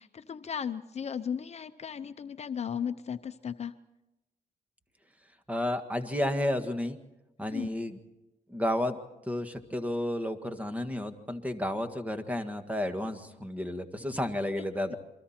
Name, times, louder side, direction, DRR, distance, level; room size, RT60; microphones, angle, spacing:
voice 1, 0.0-3.7 7.5-7.7 14.9-15.0, left 7 dB, 45° left, 10 dB, 0.7 m, -36 dB
voice 2, 5.5-7.0 7.4-8.0 8.5-9.0 9.3-15.0, left 1 dB, 10° right, 7 dB, 1.7 m, -32 dB
28.5 x 23.5 x 4.4 m, 0.97 s
cardioid pair, 105°, 15 cm